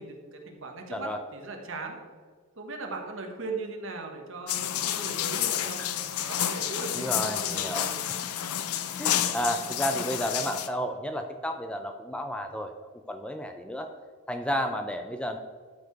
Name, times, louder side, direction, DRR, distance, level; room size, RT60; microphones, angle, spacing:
voice 1, 0.0-2.0 2.6-5.8 6.2-8.0, right 3 dB, 60° right, 3 dB, 1.4 m, -38 dB
sound 1, 4.5-10.7, left 10 dB, 85° left, 0.6 m, -30 dB
voice 2, 6.9-7.9 9.0-13.9 14.3-15.4, equal, 5° left, 6 dB, 0.4 m, -32 dB
12.5 x 4.7 x 4.6 m, 1.5 s
head